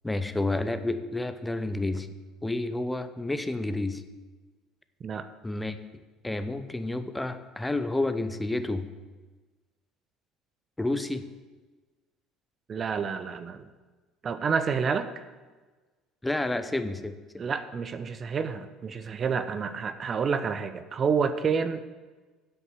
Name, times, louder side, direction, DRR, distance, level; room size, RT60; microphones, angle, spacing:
voice 1, 0.0-2.1 2.4-4.0 5.4-5.8 6.2-8.9 10.8-11.2 16.2-17.2, left 2 dB, 10° left, 10 dB, 0.8 m, -30 dB
voice 2, 12.7-13.7 14.2-15.2 17.4-21.9, right 6 dB, 40° right, 10 dB, 0.6 m, -29 dB
8.0 x 6.4 x 7.3 m, 1.3 s
hypercardioid pair, 60°, 0 cm